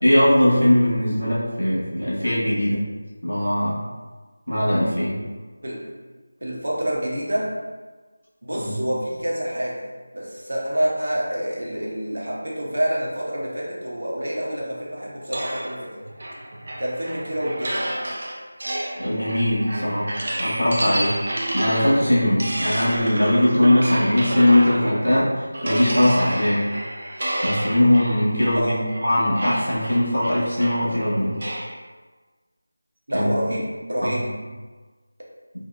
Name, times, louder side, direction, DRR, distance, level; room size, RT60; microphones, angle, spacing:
voice 1, 0.0-2.8 3.2-3.8 4.5-5.2 8.6-8.7 19.0-20.1 20.4-21.2 21.5-26.7 27.4-28.7 29.0-31.4 33.1-33.3 34.0-34.3, left 1 dB, 85° left, -7 dB, 1.5 m, -20 dB
voice 2, 6.4-7.5 8.4-9.9 10.1-16.0 16.8-17.9 28.6-28.8 33.1-34.3, right 1 dB, 65° right, -4 dB, 0.9 m, -27 dB
sound 1, 15.3-25.1 25.5-31.8, right 1 dB, 50° right, 0.5 m, -30 dB
3.6 x 2.6 x 2.3 m, 1.3 s
figure-of-eight pair, 165°, 0 cm